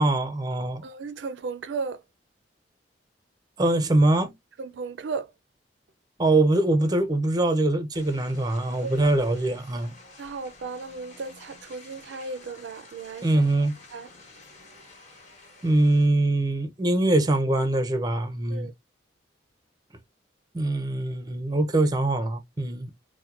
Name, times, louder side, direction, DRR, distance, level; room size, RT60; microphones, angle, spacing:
voice 1, 0.0-0.8 3.6-4.3 6.2-9.9 13.2-13.7 15.6-18.7 20.5-22.9, right 2 dB, 20° right, 0.5 m, -23 dB
voice 2, 0.8-2.0 4.6-5.3 8.8-8.9 10.2-13.5 13.9-14.1 18.5-18.7, right 4 dB, 75° right, 0.4 m, -35 dB
sound 1, 7.9-16.1, left 2 dB, 40° left, 1.2 m, -50 dB
4.2 x 2.1 x 2.4 m
head